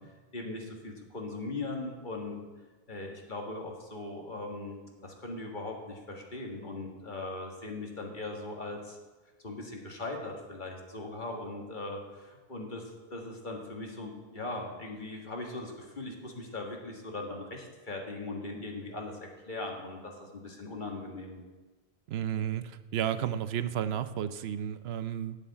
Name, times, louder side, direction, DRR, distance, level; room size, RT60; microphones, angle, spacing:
voice 1, 0.3-2.4 2.9-9.0 9.4-12.8 13.1-21.4, left 2 dB, 50° left, 1 dB, 1.9 m, -39 dB
voice 2, 22.1-25.4, right 9 dB, 75° right, 13 dB, 0.9 m, -32 dB
9.1 x 7.1 x 8.5 m, 1.2 s
omnidirectional pair, 1.1 m